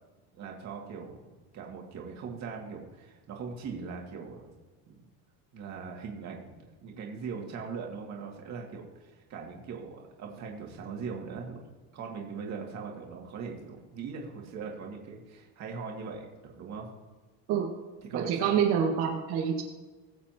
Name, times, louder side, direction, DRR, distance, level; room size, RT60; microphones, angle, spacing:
voice 1, 0.3-1.2 1.5-4.5 4.9-5.1 5.5-11.6 11.9-16.9 18.0-18.6, right 5 dB, 40° right, 0 dB, 2.4 m, -40 dB
voice 2, 18.1-19.6, right 8 dB, 60° right, -1 dB, 2.0 m, -26 dB
21.0 x 7.3 x 3.0 m, 1.3 s
cardioid pair, 155°, 43 cm